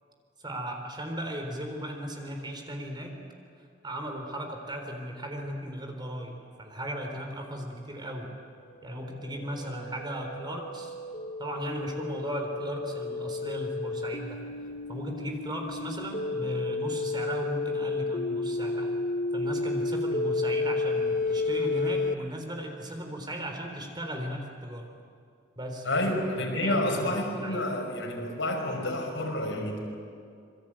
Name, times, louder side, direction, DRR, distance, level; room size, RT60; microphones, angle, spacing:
voice 1, 0.4-3.2 3.8-8.3 8.8-10.9 11.4-14.4 14.9-18.9 19.3-24.9 25.6-26.0 26.5-27.1 27.4-27.6, equal, 25° right, 3 dB, 3.9 m, -36 dB
sound 1, 8.9-22.1, left 3 dB, 45° left, 1.0 m, -32 dB
voice 2, 25.8-29.8, left 1 dB, 85° left, 1 dB, 5.9 m, -29 dB
27.0 x 23.0 x 8.9 m, 2.3 s
head